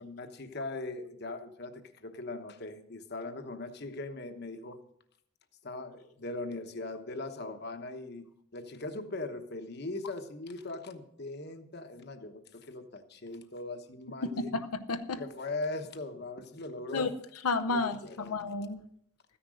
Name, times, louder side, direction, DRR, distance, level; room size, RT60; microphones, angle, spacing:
voice 1, 0.0-4.8 5.6-8.3 8.5-14.5 15.2-17.1 17.7-18.4, left 2 dB, 45° left, 1.1 m, -40 dB
voice 2, 14.2-15.2 16.9-17.1 17.4-18.8, left 3 dB, 90° left, 0.8 m, -31 dB
14.0 x 10.0 x 6.3 m
head